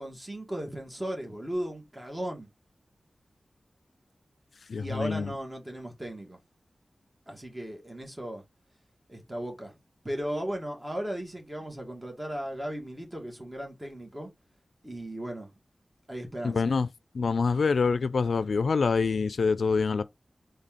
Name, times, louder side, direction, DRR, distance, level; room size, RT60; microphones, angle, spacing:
voice 1, 0.0-2.5 4.8-6.4 7.3-8.4 9.1-9.7 10.0-14.3 14.8-15.5 16.1-16.7, equal, 15° right, 1.8 m, -36 dB
voice 2, 4.7-5.3 16.4-16.9 17.1-20.0, left 4 dB, 85° left, 0.3 m, -26 dB
4.2 x 3.2 x 3.7 m
wide cardioid pair, 95°, 0 cm